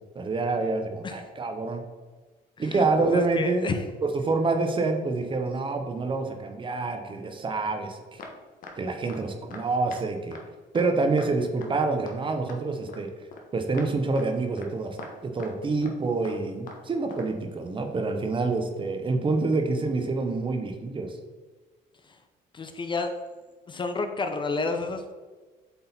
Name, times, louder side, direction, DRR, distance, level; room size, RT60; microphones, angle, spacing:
voice 1, 0.1-1.8 2.6-3.7 4.0-8.2 8.8-10.4 10.7-13.1 13.5-15.0 15.2-21.2, right 3 dB, 30° right, 5 dB, 0.9 m, -27 dB
voice 2, 2.6-3.8 22.1-22.2 22.5-23.1 23.7-25.1, left 3 dB, 30° left, 6 dB, 0.6 m, -30 dB
sound 1, 8.2-8.8 9.1-9.2 9.5-9.6 9.9-10.0 10.3-10.4 10.8-10.9 11.2-11.3 11.6-11.7 12.1-12.2 12.5-13.0 13.3-13.4 13.7-13.9 14.1-14.3 14.6-14.7 15.0-15.5 15.8-16.0 16.2-16.9 17.1-17.3 18.5-18.6, left 3 dB, 55° left, 1.2 m, -42 dB
8.0 x 3.8 x 4.3 m, 1.3 s
cardioid pair, 110°, 17 cm